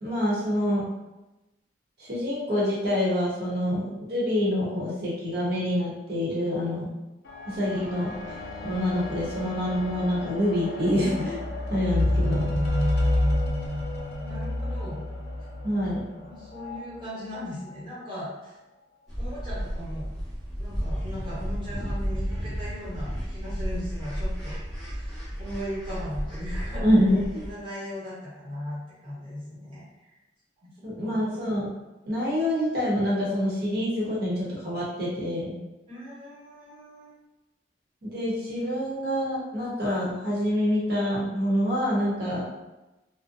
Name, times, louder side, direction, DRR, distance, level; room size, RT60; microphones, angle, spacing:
voice 1, 0.0-0.9 2.0-6.9 7.5-8.3 8.6-11.4 11.7-12.5 15.6-16.1 26.8-27.4 30.8-31.7 32.0-35.6 38.0-42.5, equal, 55° right, -6 dB, 0.8 m, -26 dB
sound 1, 7.3-16.8 17.6-17.7, left 1 dB, 55° left, 0.5 m, -29 dB
voice 2, 14.2-15.0 16.2-18.5 19.2-20.1 20.6-24.6 24.9-27.0 27.3-30.2 30.6-30.7 31.0-31.3 35.9-37.1, equal, 25° right, -9 dB, 1.0 m, -38 dB
sound 2, 19.1-27.5, equal, ahead, 0.9 m, -32 dB
2.5 x 2.0 x 2.5 m, 1.0 s
head